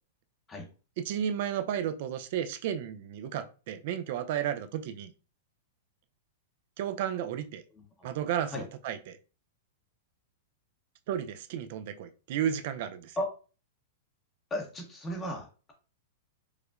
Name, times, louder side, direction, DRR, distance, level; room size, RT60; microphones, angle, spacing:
voice 1, 1.0-5.1 6.8-7.6 8.0-9.2 11.1-13.2, right 9 dB, 60° right, 0.4 m, -33 dB
voice 2, 7.8-8.1 8.5-8.6 13.2-13.3 14.5-15.7, left 1 dB, 20° left, 0.9 m, -35 dB
4.7 x 2.1 x 2.4 m
hypercardioid pair, 130°, 0 cm